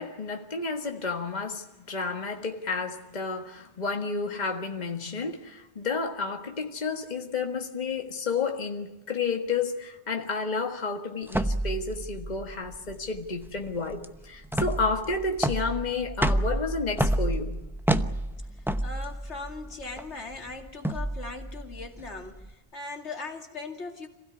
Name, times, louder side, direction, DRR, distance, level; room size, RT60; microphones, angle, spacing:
voice 1, 0.0-17.6, left 4 dB, 40° left, 1.8 m, -31 dB
sound 1, 11.3-22.5, right 1 dB, ahead, 0.7 m, -30 dB
voice 2, 18.8-24.1, left 3 dB, 85° left, 2.7 m, -39 dB
27.0 x 16.0 x 9.8 m
omnidirectional pair, 1.1 m